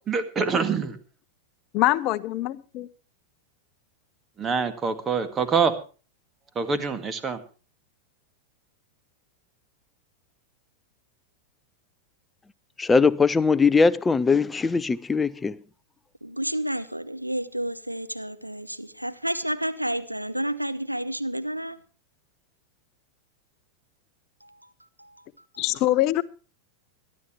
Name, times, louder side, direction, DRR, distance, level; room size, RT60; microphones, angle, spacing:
voice 1, 0.1-1.0 4.4-5.7 6.6-7.4, right 5 dB, 20° right, 1.8 m, -25 dB
voice 2, 1.7-2.9 25.6-26.2, left 16 dB, 40° left, 0.8 m, -23 dB
voice 3, 12.8-15.6, left 4 dB, 15° left, 0.6 m, -20 dB
voice 4, 16.2-21.8 25.0-25.1, right 1 dB, 90° right, 1.0 m, -30 dB
22.5 x 12.0 x 3.2 m
figure-of-eight pair, 90°, 0 cm